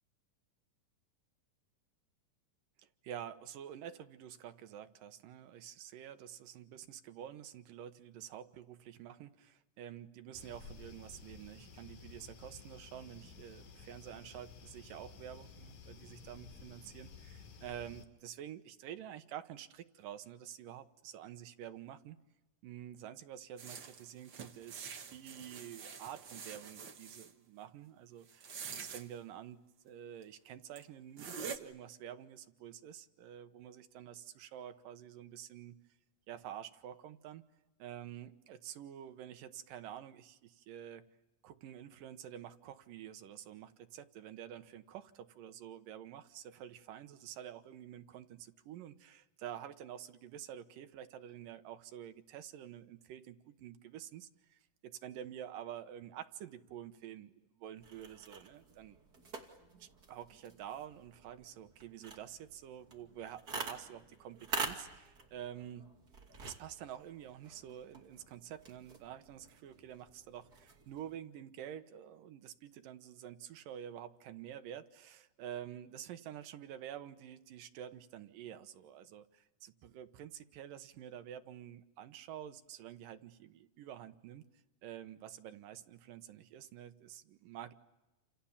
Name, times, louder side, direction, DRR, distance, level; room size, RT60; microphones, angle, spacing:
voice 1, 3.0-22.2 22.6-29.6 29.8-35.8 36.3-37.4 37.8-41.0 41.4-59.0 59.8-65.9 66.4-84.4 84.8-87.7, right 10 dB, 75° right, 9 dB, 2.7 m, -49 dB
sound 1, 10.3-18.1, left 5 dB, 65° left, 3.8 m, -54 dB
sound 2, 23.6-27.3 28.3-29.0 30.2-30.3 30.8-30.9 31.2-31.6, right 6 dB, 45° right, 1.6 m, -46 dB
sound 3, 57.8-71.2, right 4 dB, 30° right, 2.6 m, -47 dB
29.0 x 28.0 x 7.2 m, 1.0 s
omnidirectional pair, 4.0 m